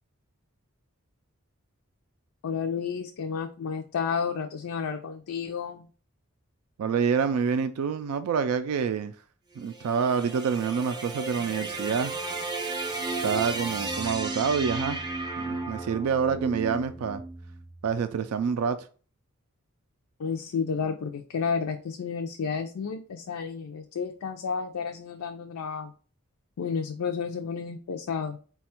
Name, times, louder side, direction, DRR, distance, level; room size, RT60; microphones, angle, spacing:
voice 1, 2.4-5.9 20.2-25.9 26.6-28.4, left 6 dB, 85° left, 0.4 m, -31 dB
voice 2, 6.8-9.1 9.6-12.1 13.2-15.0 15.4-17.2 17.8-18.9, right 6 dB, 85° right, 0.3 m, -27 dB
sound 1, 9.5-17.9, right 3 dB, 20° right, 0.5 m, -34 dB
4.2 x 2.3 x 4.3 m
head